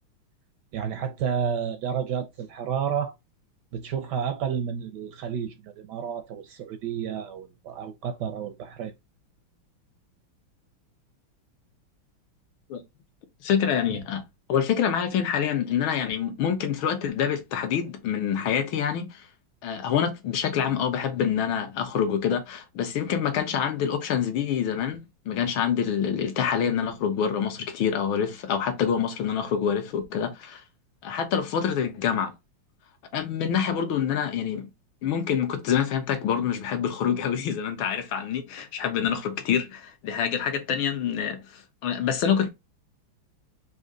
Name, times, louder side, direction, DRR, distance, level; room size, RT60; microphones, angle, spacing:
voice 1, 0.7-3.1 3.7-8.9, right 7 dB, 75° right, 1.0 m, -31 dB
voice 2, 13.4-14.2 14.5-19.3 19.6-30.6 31.0-32.3 33.1-34.7 35.0-42.5, left 8 dB, 75° left, 1.7 m, -26 dB
4.2 x 2.7 x 3.7 m
omnidirectional pair, 2.2 m